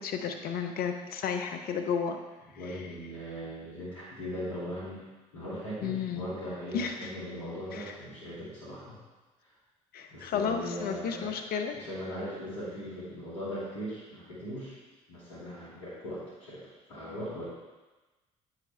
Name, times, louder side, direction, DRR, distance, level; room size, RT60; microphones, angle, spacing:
voice 1, 0.0-2.2 5.8-6.3 6.7-7.1 7.7-7.9 9.9-11.8, left 6 dB, 60° left, 6 dB, 0.9 m, -32 dB
voice 2, 2.6-5.1 5.3-9.0 10.1-14.8 15.1-16.6 16.9-17.4, equal, 80° left, -9 dB, 2.4 m, -39 dB
8.3 x 6.5 x 3.3 m, 1.2 s
hypercardioid pair, 50°, 18 cm